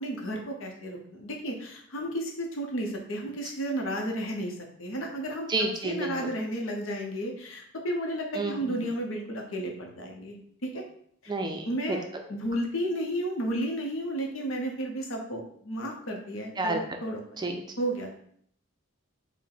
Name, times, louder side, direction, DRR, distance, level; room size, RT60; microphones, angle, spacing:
voice 1, 0.0-10.4 10.6-10.8 11.2-11.3 11.7-12.0 12.3-17.5 17.8-18.1, right 1 dB, 70° left, 1 dB, 0.8 m, -33 dB
voice 2, 5.5-6.3 8.3-8.5 11.3-12.0 16.6-16.8 17.4-17.6, right 2 dB, 20° right, 4 dB, 0.4 m, -30 dB
4.5 x 2.1 x 3.8 m, 0.65 s
head